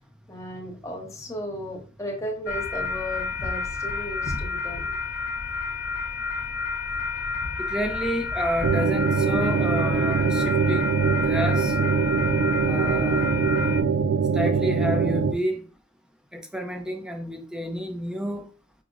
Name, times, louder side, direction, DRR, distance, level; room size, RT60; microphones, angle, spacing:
voice 1, 0.3-5.0, equal, 15° left, 0.7 m, -35 dB
sound 1, 2.5-13.8, left 4 dB, 55° left, 0.4 m, -30 dB
voice 2, 7.6-10.9 11.3-11.7 12.6-13.3 14.3-15.6 16.3-18.5, equal, 5° right, 0.4 m, -30 dB
sound 2, 8.6-15.3, right 5 dB, 90° right, 0.3 m, -23 dB
4.7 x 2.0 x 2.4 m
head